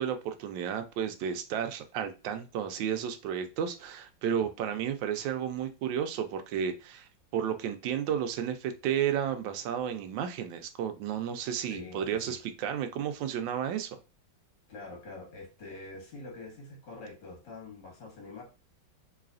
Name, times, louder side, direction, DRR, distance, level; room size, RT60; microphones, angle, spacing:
voice 1, 0.0-13.9, right 8 dB, 80° right, 1.3 m, -32 dB
voice 2, 11.7-12.4 14.7-18.4, left 3 dB, 70° left, 2.1 m, -45 dB
4.0 x 3.0 x 2.5 m
omnidirectional pair, 2.0 m